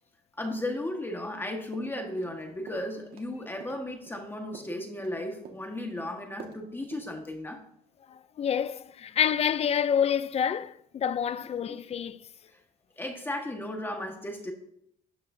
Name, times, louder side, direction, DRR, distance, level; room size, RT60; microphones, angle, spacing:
voice 1, 0.4-7.6 11.7-11.8 12.5-12.6 13.0-14.5, left 1 dB, 10° left, 1.4 m, -35 dB
sound 1, 1.7-2.4 2.7-3.3 3.6-5.2 5.4-6.0 6.4-6.6 6.9-7.0, right 6 dB, 65° right, 1.7 m, -47 dB
voice 2, 8.1-12.3, left 8 dB, 40° left, 0.5 m, -28 dB
13.0 x 9.7 x 2.7 m
cardioid pair, 110°, 17 cm